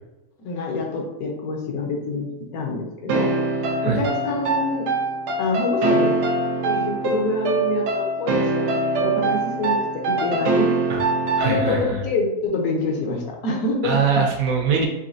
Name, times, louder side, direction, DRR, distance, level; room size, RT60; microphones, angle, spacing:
voice 1, 0.4-2.3 2.5-3.3 3.8-4.8 5.4-6.1 6.6-9.8 10.1-10.7 11.4-14.0, left 2 dB, 70° left, 0 dB, 1.2 m, -26 dB
sound 1, 3.1-12.0, right 2 dB, 85° right, 1.2 m, -23 dB
voice 2, 11.4-12.0 13.8-14.9, right 5 dB, 70° right, 1 dB, 1.0 m, -22 dB
4.1 x 3.0 x 2.6 m, 1.0 s
omnidirectional pair, 1.7 m